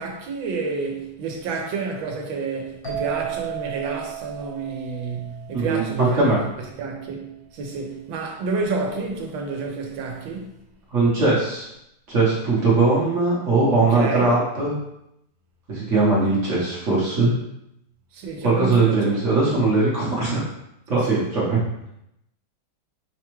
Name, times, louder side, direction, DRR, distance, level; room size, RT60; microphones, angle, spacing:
voice 1, 0.0-6.4 6.8-10.6 13.8-14.4 18.1-19.2 20.9-21.3, right 4 dB, 85° right, 1.5 m, -29 dB
sound 1, 2.8-6.5, right 11 dB, 35° left, 0.6 m, -34 dB
voice 2, 5.5-6.4 10.9-11.7 12.1-14.7 15.7-17.3 18.4-20.4 20.9-21.6, right 3 dB, 50° right, 1.0 m, -20 dB
5.0 x 2.3 x 3.0 m
omnidirectional pair, 2.1 m